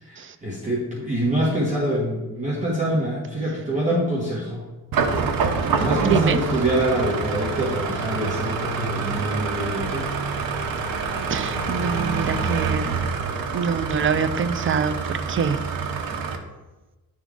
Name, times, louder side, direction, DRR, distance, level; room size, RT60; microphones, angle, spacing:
voice 1, 0.0-4.7 5.8-10.1, right 1 dB, 20° right, -7 dB, 1.4 m, -25 dB
sound 1, 4.9-16.3, right 5 dB, 70° right, 0.9 m, -26 dB
voice 2, 5.8-6.4 11.3-13.0 13.5-15.6, right 6 dB, 35° right, 10 dB, 0.4 m, -25 dB
10.5 x 3.6 x 3.7 m, 1.1 s
wide cardioid pair, 165°, 35 cm